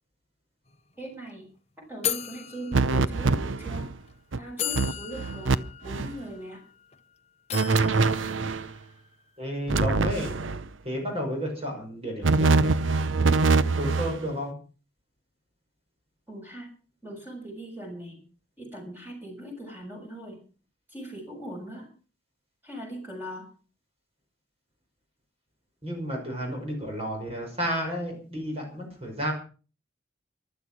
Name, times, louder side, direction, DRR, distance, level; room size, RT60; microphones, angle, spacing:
sound 1, 0.7-1.3 2.0-3.5 4.1-4.2 4.6-7.0 7.5-9.1, left 9 dB, 35° left, 0.9 m, -36 dB
voice 1, 1.0-1.5 1.8-3.9 4.4-6.6 16.3-16.7 17.0-18.2 18.6-20.4 20.9-21.9 22.6-23.5, right 1 dB, 10° right, 1 dB, 6.9 m, -40 dB
sound 2, 2.7-3.9 4.3-4.4 4.7-5.6 5.8-6.2 7.5-8.7 9.7-10.7 12.2-14.2, right 3 dB, 85° right, 0.8 m, -24 dB
voice 2, 9.4-10.4 10.8-12.8 13.7-14.5 25.8-29.3, equal, 30° right, 1 dB, 5.8 m, -32 dB
15.0 x 12.0 x 6.2 m, 0.38 s
head